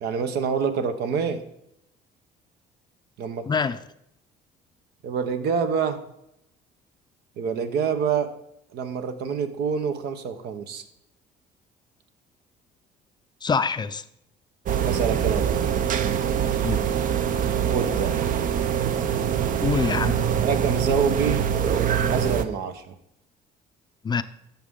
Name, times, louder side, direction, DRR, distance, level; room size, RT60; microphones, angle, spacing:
voice 1, 0.0-1.4 3.2-3.5 5.0-6.0 7.4-8.3 8.7-10.8 14.8-15.6 17.7-18.2 20.4-21.5 22.1-22.9, right 6 dB, 75° right, 1.0 m, -26 dB
voice 2, 3.5-3.8 13.4-14.0 16.6-16.9 19.6-20.3 24.0-24.2, left 5 dB, 25° left, 0.5 m, -25 dB
sound 1, 14.7-22.4, right 8 dB, 50° right, 0.7 m, -24 dB
11.5 x 7.2 x 3.7 m
cardioid pair, 110°, 17 cm